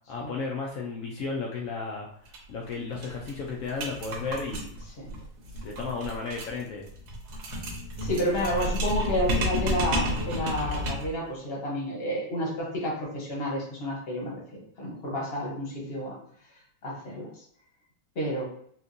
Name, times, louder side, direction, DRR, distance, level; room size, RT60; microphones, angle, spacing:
voice 1, 0.1-2.1 2.5-4.8 5.6-6.9, left 4 dB, 80° left, -2 dB, 0.7 m, -34 dB
sound 1, 2.3-2.4 2.7-2.8 3.0-11.2, equal, 75° right, 1.6 m, -31 dB
voice 2, 8.0-14.4 14.8-16.1 16.8-17.3 18.1-18.4, equal, 40° left, -3 dB, 0.9 m, -30 dB
4.2 x 2.5 x 2.6 m, 0.64 s
omnidirectional pair, 2.1 m